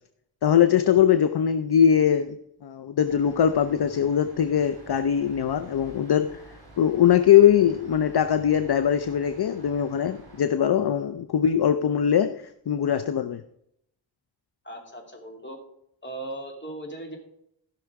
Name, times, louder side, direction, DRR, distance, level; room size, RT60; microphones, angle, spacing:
voice 1, 0.4-6.4 6.8-13.4, left 9 dB, 60° left, 0.6 m, -21 dB
sound 1, 3.0-10.4, right 2 dB, 50° right, 3.9 m, -49 dB
voice 2, 14.6-15.6 16.0-17.2, right 1 dB, 25° left, 2.7 m, -38 dB
15.5 x 6.1 x 4.7 m
wide cardioid pair, 90°, 44 cm